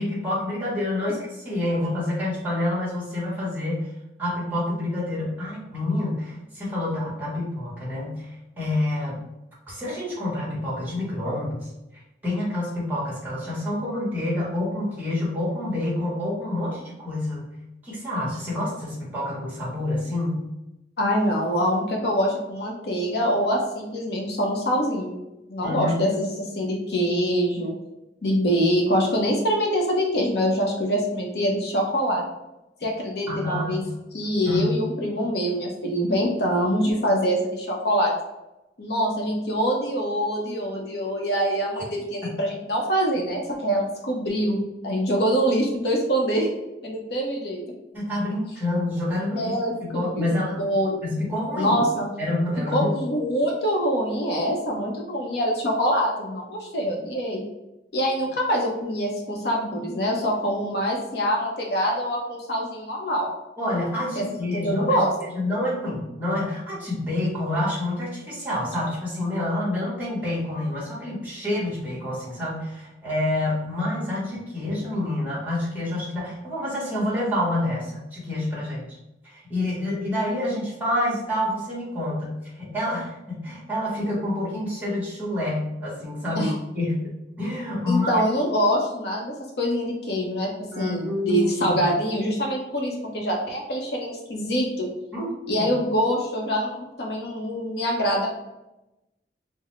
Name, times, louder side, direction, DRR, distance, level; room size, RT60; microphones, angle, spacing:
voice 1, 0.0-3.9 4.2-9.2 9.7-11.7 12.2-17.5 17.8-20.4 25.6-26.1 33.3-34.0 34.4-34.8 47.9-49.5 49.8-50.6 51.0-51.8 52.2-52.9 63.6-78.9 79.2-87.1 87.4-88.2 90.7-91.8 95.1-95.3 95.6-95.7, left 1 dB, 10° right, -6 dB, 1.2 m, -28 dB
voice 2, 21.0-25.1 25.5-27.7 28.2-32.2 32.8-33.8 34.1-38.1 38.8-44.6 44.8-46.5 46.8-47.6 49.4-50.3 50.6-51.0 51.6-52.1 52.7-57.4 57.9-63.3 64.2-65.1 86.3-86.5 87.9-90.5 90.8-94.9 95.5-98.3, equal, 65° left, -1 dB, 0.7 m, -24 dB
3.9 x 2.0 x 3.1 m, 0.94 s
head